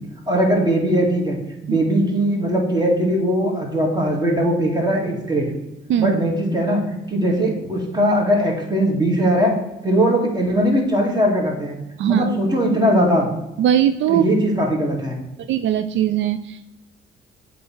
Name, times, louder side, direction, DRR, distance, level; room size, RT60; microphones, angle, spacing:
voice 1, 0.3-1.4 1.6-5.5 6.0-6.8 7.1-9.6 9.8-11.8 12.1-13.3 14.1-15.2, equal, 20° right, 0 dB, 2.1 m, -19 dB
voice 2, 13.6-14.3 15.5-16.7, right 10 dB, 70° right, 10 dB, 0.4 m, -19 dB
7.5 x 3.4 x 5.7 m, 0.95 s
cardioid pair, 90°, 20 cm